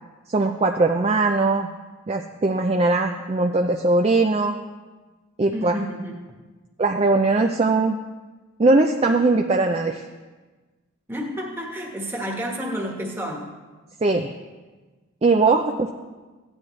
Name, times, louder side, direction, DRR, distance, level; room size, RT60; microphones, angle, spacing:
voice 1, 0.3-1.7 2.1-4.6 5.4-5.8 6.8-8.0 8.6-10.0 14.0-14.3 15.2-15.9, right 3 dB, 30° right, 4 dB, 0.4 m, -20 dB
voice 2, 5.5-6.2 11.1-13.5, equal, 10° right, -1 dB, 1.3 m, -30 dB
15.5 x 9.8 x 3.2 m, 1.3 s
head